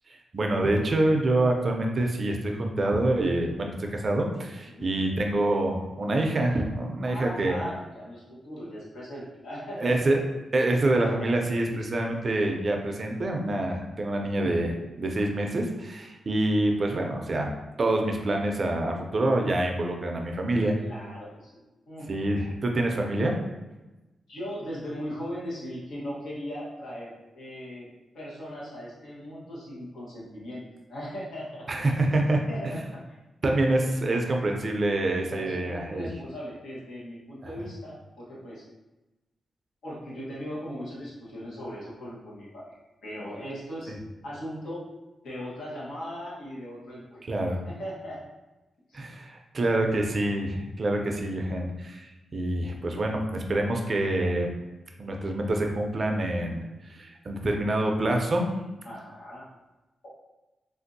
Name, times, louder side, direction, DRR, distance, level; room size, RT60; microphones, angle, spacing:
voice 1, 0.3-7.6 9.8-10.2 10.5-17.5 17.8-20.7 22.1-23.4 31.7-32.7 33.4-36.1 37.4-37.5 47.2-47.6 48.9-54.5 55.0-56.6 56.9-58.5, right 1 dB, 40° right, 2 dB, 0.4 m, -26 dB
voice 2, 4.7-5.1 7.0-10.0 11.0-11.5 20.8-22.1 24.3-27.9 28.1-30.6 30.9-31.7 32.5-33.0 33.8-33.9 35.3-38.6 39.8-42.7 43.0-43.9 44.2-44.9 45.2-47.2 47.6-48.2 48.9-49.0 58.8-59.4, equal, 85° left, -7 dB, 1.2 m, -38 dB
3.4 x 2.5 x 2.6 m, 1.1 s
wide cardioid pair, 130°, 0 cm